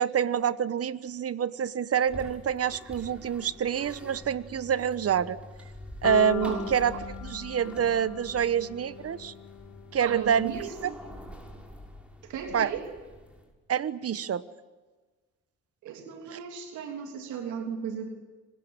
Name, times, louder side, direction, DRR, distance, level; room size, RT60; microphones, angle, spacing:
voice 1, 0.0-5.4 6.0-9.3 9.9-10.9 12.5-12.7 13.7-14.4 16.3-16.4, right 8 dB, 55° right, 16 dB, 1.2 m, -27 dB
sound 1, 2.1-13.5, left 1 dB, 5° right, 6.2 m, -47 dB
sound 2, 6.0-10.1, left 11 dB, 75° left, 1.0 m, -38 dB
voice 2, 10.0-11.0 12.2-12.9 15.8-18.1, right 7 dB, 90° right, 5 dB, 3.3 m, -36 dB
25.5 x 20.0 x 9.6 m, 1.3 s
cardioid pair, 75°, 29 cm